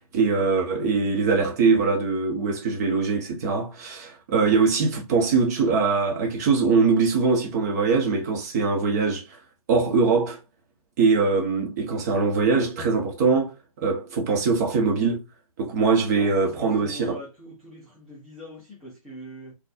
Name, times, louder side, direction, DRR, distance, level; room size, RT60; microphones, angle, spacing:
voice 1, 0.1-9.2 9.7-10.4 11.0-15.2 15.6-17.2, right 4 dB, 30° right, 1.0 m, -22 dB
voice 2, 16.2-19.5, equal, ahead, 0.4 m, -42 dB
4.0 x 2.3 x 2.5 m
figure-of-eight pair, 145°, 18 cm